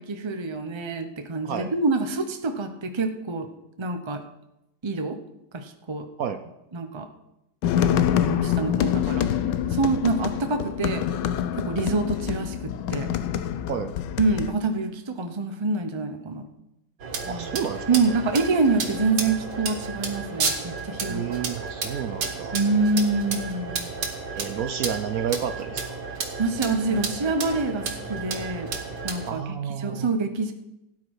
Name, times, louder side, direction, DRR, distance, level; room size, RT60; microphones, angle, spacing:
voice 1, 0.0-3.5 3.8-4.2 4.8-5.2 5.5-6.1 6.7-7.1 8.0-9.3 9.7-11.0 11.6-13.1 14.2-16.5 17.2-17.5 17.9-21.4 22.5-23.9 26.4-28.7 29.0-30.5, right 3 dB, 20° right, 6 dB, 0.8 m, -26 dB
sound 1, 7.6-14.5, left 9 dB, 90° left, 1.4 m, -26 dB
sound 2, 17.0-29.3, right 4 dB, 85° right, 2.3 m, -32 dB
voice 2, 17.3-17.9 21.1-22.6 24.4-26.0 29.3-30.1, right 8 dB, 65° right, 9 dB, 1.0 m, -30 dB
16.5 x 9.6 x 4.8 m, 0.89 s
omnidirectional pair, 1.8 m